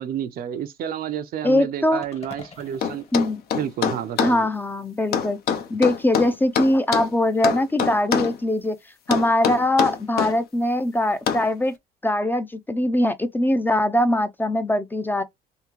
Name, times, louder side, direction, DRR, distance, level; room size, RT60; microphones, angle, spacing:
voice 1, 0.0-3.0 3.6-4.5, right 9 dB, 60° right, 0.6 m, -30 dB
voice 2, 1.4-2.1 3.1-3.4 4.2-5.4 5.7-8.8 9.1-11.7 12.0-15.2, left 1 dB, 10° left, 0.4 m, -22 dB
sound 1, 2.0-4.3, left 3 dB, 40° left, 1.1 m, -46 dB
sound 2, 2.8-4.4 5.1-7.1 7.4-8.4 9.1-10.4 11.3-11.5, left 7 dB, 65° left, 0.7 m, -24 dB
3.6 x 2.7 x 3.0 m
cardioid pair, 110°, 17 cm